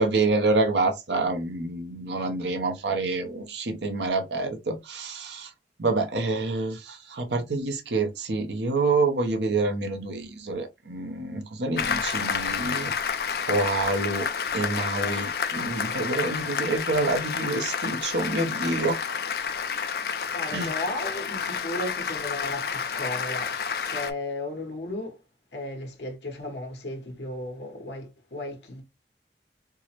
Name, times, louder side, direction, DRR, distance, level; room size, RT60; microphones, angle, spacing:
voice 1, 0.0-5.5 5.8-12.9 13.5-14.3 14.5-19.0 20.5-20.7, right 3 dB, 75° right, 0.7 m, -27 dB
Applause, 11.8-24.1, left 6 dB, 55° left, 0.4 m, -30 dB
voice 2, 20.3-25.2 25.5-28.8, left 1 dB, 75° left, 1.1 m, -35 dB
4.5 x 2.1 x 2.9 m
head